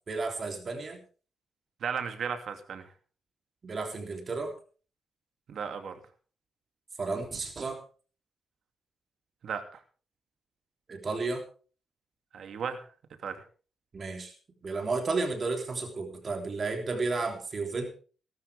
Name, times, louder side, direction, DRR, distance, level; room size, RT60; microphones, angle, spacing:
voice 1, 0.1-1.0 3.6-4.6 7.0-7.8 10.9-11.4 13.9-14.3 14.6-17.9, right 3 dB, 40° right, 3 dB, 3.4 m, -32 dB
voice 2, 1.8-2.9 5.5-5.9 9.4-9.8 12.3-12.8 13.2-13.4, right 7 dB, 65° right, 6 dB, 2.6 m, -35 dB
19.5 x 12.5 x 3.5 m, 0.38 s
cardioid pair, 120°, 0 cm